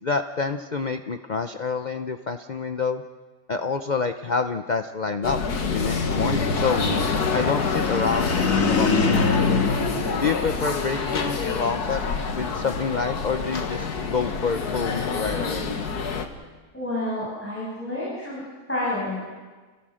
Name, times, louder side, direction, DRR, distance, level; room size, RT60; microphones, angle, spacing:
voice 1, 0.0-3.0 3.5-5.4 5.6-6.8 7.3-9.6 10.2-12.0 12.3-15.7, left 5 dB, 45° left, 7 dB, 0.6 m, -27 dB
sound 1, 5.2-16.3, left 4 dB, 85° left, 2.0 m, -27 dB
sound 2, 7.4-11.0, left 4 dB, 60° left, 2.2 m, -24 dB
voice 2, 16.7-18.4 18.7-19.2, left 1 dB, 10° left, -7 dB, 7.2 m, -29 dB
29.5 x 17.0 x 6.4 m, 1.4 s
omnidirectional pair, 1.6 m